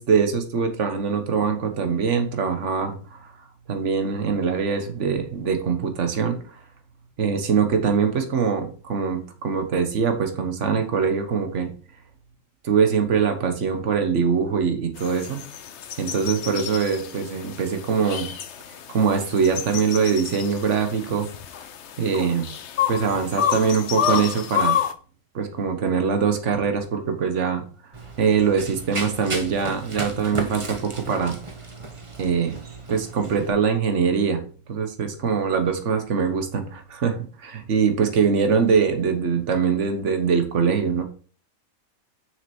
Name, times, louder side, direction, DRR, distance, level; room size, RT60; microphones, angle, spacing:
voice 1, 0.0-3.2 3.7-6.4 7.2-11.7 12.6-15.4 16.0-18.3 18.9-21.3 22.0-22.5 22.9-24.8 25.3-27.6 28.2-31.4 32.2-32.6 32.9-34.4 34.7-41.0, right 6 dB, 55° right, 6 dB, 1.5 m, -23 dB
sound 1, 15.0-24.9, left 9 dB, 60° left, 0.9 m, -29 dB
Run, 27.9-33.5, right 2 dB, 25° right, 1.0 m, -35 dB
6.6 x 6.4 x 4.5 m, 0.40 s
omnidirectional pair, 1.5 m